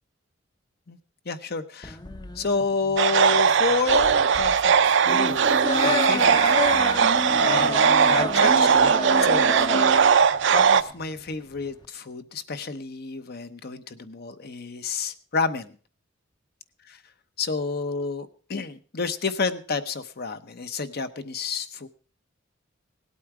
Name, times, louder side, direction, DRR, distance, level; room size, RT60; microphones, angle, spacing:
voice 1, 1.2-2.0 2.4-5.4 5.8-6.7 7.4-8.9 9.2-9.7 10.0-10.2 10.5-15.7 16.9-17.0 17.4-21.9, left 4 dB, 50° left, 11 dB, 0.8 m, -30 dB
sound 1, 1.8-11.9, left 2 dB, 20° left, 0.6 m, -31 dB
sound 2, 3.0-10.8, right 6 dB, 65° right, 0.5 m, -19 dB
sound 3, 5.0-10.1, equal, 75° left, 2.2 m, -33 dB
18.0 x 8.5 x 4.8 m, 0.41 s
head